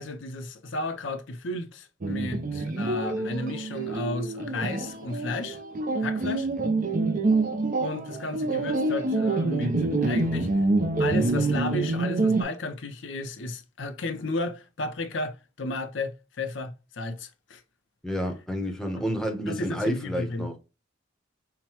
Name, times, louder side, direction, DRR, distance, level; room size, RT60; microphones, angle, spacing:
voice 1, 0.0-5.6 6.0-6.5 7.8-10.5 11.0-17.6 19.0-19.1 19.5-20.5, left 2 dB, 65° left, 0.7 m, -33 dB
sound 1, 2.0-12.4, right 2 dB, 45° right, 0.6 m, -26 dB
voice 2, 18.0-20.6, equal, 5° left, 0.8 m, -30 dB
5.7 x 2.2 x 2.9 m
head